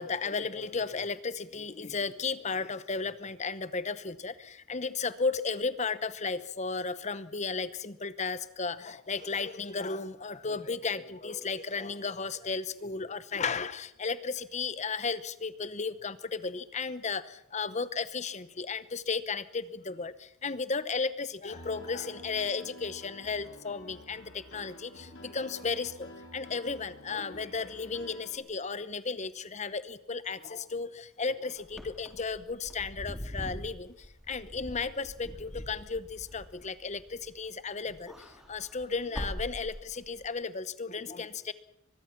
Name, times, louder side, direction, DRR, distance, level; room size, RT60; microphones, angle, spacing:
voice 1, 0.0-41.5, left 4 dB, 35° left, 15 dB, 0.9 m, -34 dB
Piano, 21.5-28.4, left 1 dB, 65° left, 3.5 m, -49 dB
Wind / Car, 31.6-37.5 37.8-40.2, equal, ahead, 3.4 m, -42 dB
24.0 x 21.0 x 6.0 m, 0.74 s
head